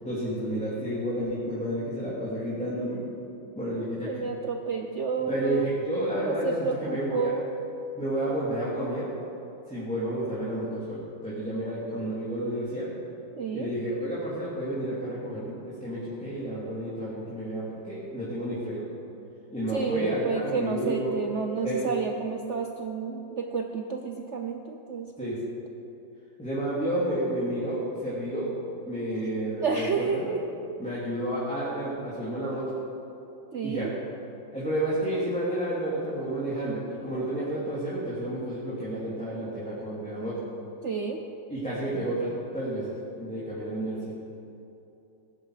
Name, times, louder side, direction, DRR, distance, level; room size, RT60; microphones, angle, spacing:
voice 1, 0.0-3.0 3.5-4.2 5.3-7.3 7.9-9.1 9.7-12.9 13.5-18.8 19.5-21.2 21.6-21.9 25.2-25.4 26.4-28.5 28.9-30.3 30.8-32.8 33.6-33.9 34.5-40.4 41.5-44.1, right 1 dB, 5° left, -10 dB, 2.7 m, -31 dB
voice 2, 4.0-5.7 6.2-7.5 13.4-13.7 19.7-25.3 29.6-30.4 33.5-33.9 40.8-41.2, right 5 dB, 85° right, 3 dB, 0.6 m, -30 dB
19.5 x 11.0 x 5.0 m, 2.9 s
omnidirectional pair, 2.3 m